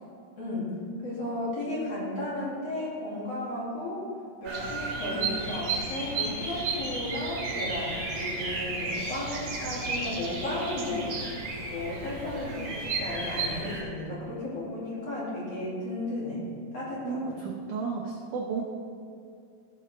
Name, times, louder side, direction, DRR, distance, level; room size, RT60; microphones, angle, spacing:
voice 1, 0.4-0.7 1.0-4.0 4.4-11.3 11.7-16.4 16.7-17.2, left 1 dB, 45° left, -8 dB, 3.0 m, -34 dB
Bird vocalization bird call bird song, 4.4-13.8, right 3 dB, 55° right, 3.4 m, -33 dB
voice 2, 17.0-18.6, right 5 dB, 80° right, -1 dB, 1.7 m, -33 dB
14.5 x 8.0 x 3.2 m, 2.3 s
omnidirectional pair, 4.6 m